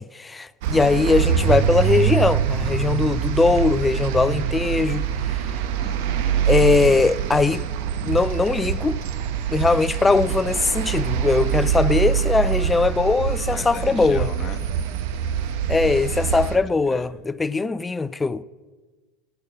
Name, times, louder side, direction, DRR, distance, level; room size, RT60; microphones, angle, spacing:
voice 1, 0.0-5.1 6.5-7.6 8.0-9.0 9.5-14.3 15.7-18.4, left 3 dB, 15° left, 0.4 m, -20 dB
sound 1, 0.6-16.6, right 8 dB, 65° right, 0.7 m, -24 dB
voice 2, 0.7-1.1 5.8-6.5 13.5-14.6 16.0-17.1, left 6 dB, 35° left, 1.0 m, -39 dB
8.7 x 6.8 x 8.0 m
hypercardioid pair, 90°, 0 cm